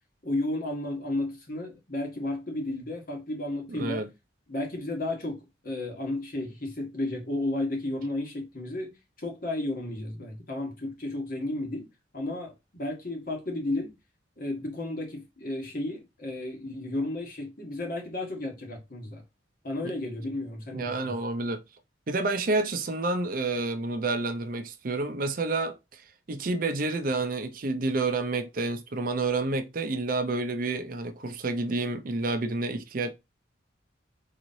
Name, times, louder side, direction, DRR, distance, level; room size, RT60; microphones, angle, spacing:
voice 1, 0.2-4.0 4.5-11.9 12.1-13.9 14.4-19.2 19.6-21.1, left 2 dB, 45° left, 1.3 m, -33 dB
voice 2, 3.8-4.1 20.7-21.6 22.1-33.1, right 3 dB, 45° right, 0.5 m, -29 dB
3.9 x 3.1 x 2.6 m
head